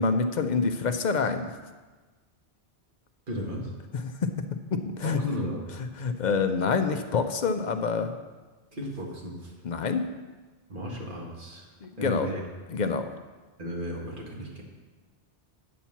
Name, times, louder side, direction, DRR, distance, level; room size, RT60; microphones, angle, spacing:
voice 1, 0.0-1.5 4.2-4.3 4.7-5.2 6.0-8.1 9.6-10.1 11.8-12.3 12.7-13.1, left 5 dB, 55° left, 8 dB, 0.6 m, -26 dB
voice 2, 3.3-3.8 5.0-5.7 8.7-9.5 10.7-11.7 12.0-12.4 13.6-14.6, equal, 45° right, -2 dB, 1.7 m, -35 dB
9.3 x 4.4 x 7.0 m, 1.3 s
omnidirectional pair, 1.2 m